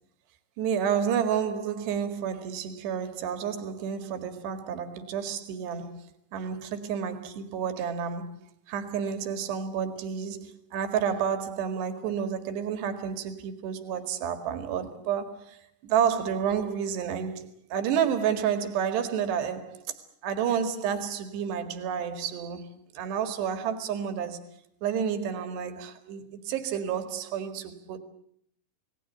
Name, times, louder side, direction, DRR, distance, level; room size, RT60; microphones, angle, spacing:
voice 1, 0.6-6.0 6.3-8.4 8.7-19.8 20.2-22.7 23.0-24.4 24.8-28.0, right 8 dB, 75° right, 4.1 m, -30 dB
28.5 x 19.0 x 8.1 m
omnidirectional pair, 4.9 m